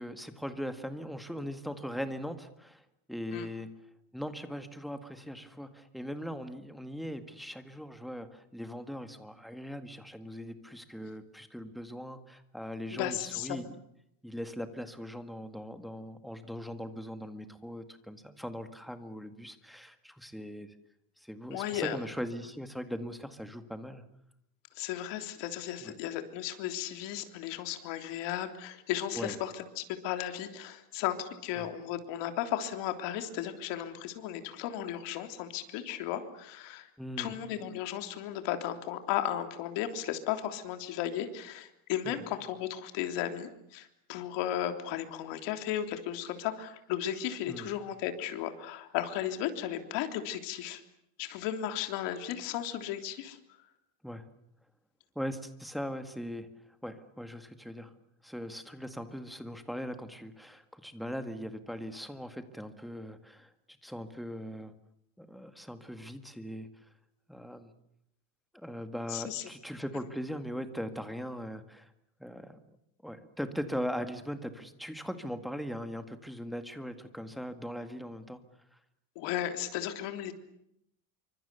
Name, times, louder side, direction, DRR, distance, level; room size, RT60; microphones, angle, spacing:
voice 1, 0.0-3.7 4.1-13.8 14.2-20.8 21.2-24.0 25.8-26.0 29.1-29.4 31.6-31.7 37.0-37.4 42.0-42.2 47.5-47.7 54.0-54.3 55.2-56.5 56.8-57.9 58.2-63.5 63.8-64.7 65.2-66.8 67.3-67.7 68.5-71.9 72.2-72.6 73.0-78.4 78.7-78.8, equal, ahead, 8 dB, 1.9 m, -40 dB
voice 2, 12.9-13.6 21.5-22.0 24.8-36.9 37.2-50.8 51.2-53.4 69.1-69.4 79.2-80.3, left 11 dB, 65° left, 7 dB, 3.5 m, -35 dB
28.0 x 25.0 x 7.0 m, 0.77 s
cardioid pair, 155°, 45 cm